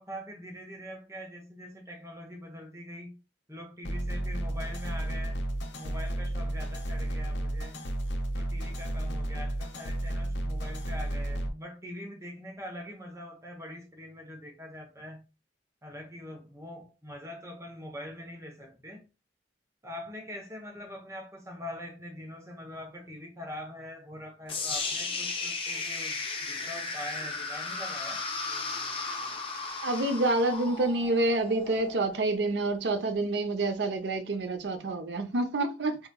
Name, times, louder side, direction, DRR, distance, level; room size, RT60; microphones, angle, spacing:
voice 1, 0.0-3.2 3.5-5.5 5.8-7.8 8.3-15.2 15.8-19.1 19.8-28.2, left 1 dB, 15° right, 0.9 m, -43 dB
sound 1, 3.9-11.5, right 1 dB, 75° left, 0.6 m, -32 dB
sound 2, 24.5-32.5, left 3 dB, 30° left, 0.7 m, -35 dB
voice 2, 29.8-36.1, right 2 dB, 70° right, 0.6 m, -28 dB
3.8 x 2.8 x 2.2 m
head